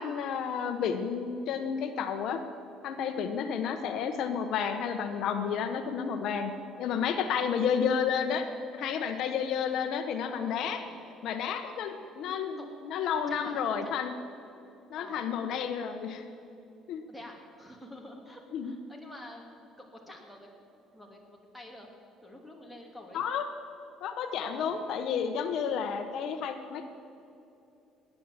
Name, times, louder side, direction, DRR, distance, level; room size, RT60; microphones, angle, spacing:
voice 1, 0.0-2.4 2.8-6.5 6.8-8.4 8.7-10.8 11.2-14.1 14.9-16.2 16.9-17.0 18.5-18.7 23.1-23.5 24.0-26.9, left 7 dB, 65° left, 7 dB, 1.0 m, -31 dB
voice 2, 7.4-7.7 10.3-11.0 12.6-12.7 13.3-13.9 15.0-15.3 17.1-21.9 22.2-23.2 24.4-24.8, left 1 dB, ahead, -1 dB, 2.5 m, -48 dB
17.5 x 10.0 x 7.4 m, 2.8 s
cardioid pair, 130°, 0 cm